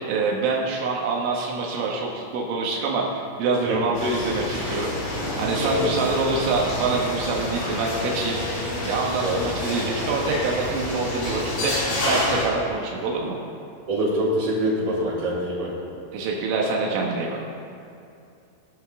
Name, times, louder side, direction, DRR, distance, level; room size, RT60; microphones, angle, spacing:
voice 1, 0.0-4.9 5.4-8.4 8.8-11.8 12.1-13.4 16.1-17.4, right 4 dB, 85° right, -1 dB, 3.7 m, -25 dB
sound 1, 3.9-12.5, left 1 dB, 70° left, 5.9 m, -28 dB
voice 2, 13.9-15.7, right 1 dB, 40° right, -8 dB, 4.5 m, -24 dB
18.0 x 12.5 x 3.5 m, 2.6 s
omnidirectional pair, 5.5 m